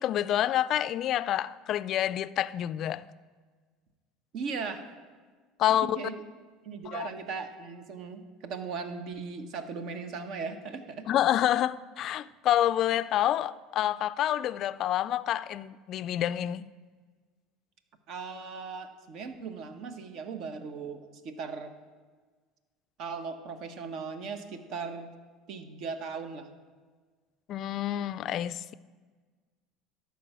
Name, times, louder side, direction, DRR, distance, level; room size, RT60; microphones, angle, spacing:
voice 1, 0.0-3.1 5.6-6.0 6.9-7.1 11.1-16.7 27.5-28.7, left 12 dB, 55° left, 0.3 m, -28 dB
voice 2, 4.3-4.8 5.8-6.1 6.6-11.1 18.1-21.7 23.0-25.1 25.5-26.5, right 5 dB, 60° right, 1.0 m, -38 dB
12.0 x 4.6 x 6.8 m
supercardioid pair, 95°, 0 cm